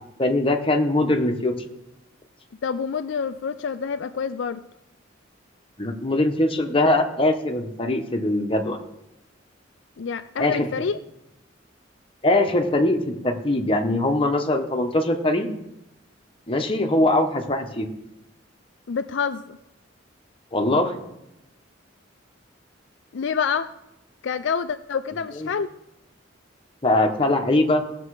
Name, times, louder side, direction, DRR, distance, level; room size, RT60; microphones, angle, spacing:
voice 1, 0.2-1.5 5.8-8.8 10.4-10.7 12.2-13.0 13.2-15.5 16.5-17.9 20.5-21.0 25.4-25.5 26.8-27.8, left 2 dB, 30° left, 4 dB, 1.2 m, -21 dB
voice 2, 2.6-4.6 10.0-11.0 18.9-19.6 23.1-23.7 24.2-25.7, left 6 dB, 70° left, 11 dB, 0.4 m, -27 dB
18.0 x 6.8 x 4.9 m, 0.89 s
head